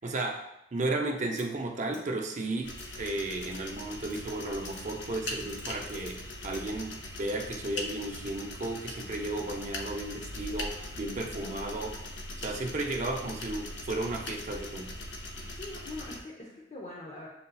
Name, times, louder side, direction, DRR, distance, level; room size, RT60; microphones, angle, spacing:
voice 1, 0.0-0.4 0.7-6.2 6.4-12.0 12.4-14.9, right 2 dB, 40° right, 2 dB, 0.5 m, -34 dB
sound 1, 1.4-1.5 1.9-2.0 2.7-2.9 3.4-3.6 4.0-4.2 4.7-4.8 5.4-6.1 6.5-6.6, left 2 dB, 90° left, 1.2 m, -52 dB
sound 2, 2.6-16.2, left 1 dB, 75° left, 0.6 m, -40 dB
voice 2, 11.1-11.8 15.4-17.3, left 2 dB, 35° left, -4 dB, 0.7 m, -44 dB
7.6 x 2.7 x 2.3 m, 0.83 s
head